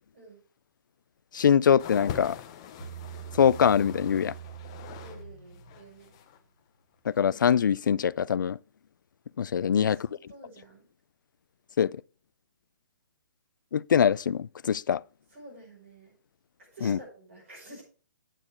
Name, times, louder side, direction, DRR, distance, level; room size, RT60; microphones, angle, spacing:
voice 1, 1.3-2.4 3.4-4.3 7.1-8.6 9.4-10.0 11.8-11.9 13.7-15.0 16.8-17.0, left 8 dB, 80° left, 0.4 m, -23 dB
sound 1, 1.8-5.2 5.5-6.4 7.1-7.2, left 9 dB, 15° left, 0.5 m, -42 dB
Bass guitar, 2.8-6.2, right 9 dB, 15° right, 4.2 m, -44 dB
voice 2, 5.0-6.2 9.6-10.9 15.3-16.2 16.6-17.8, right 2 dB, 40° right, 5.2 m, -50 dB
9.0 x 6.5 x 4.4 m
hypercardioid pair, 180°, 10 cm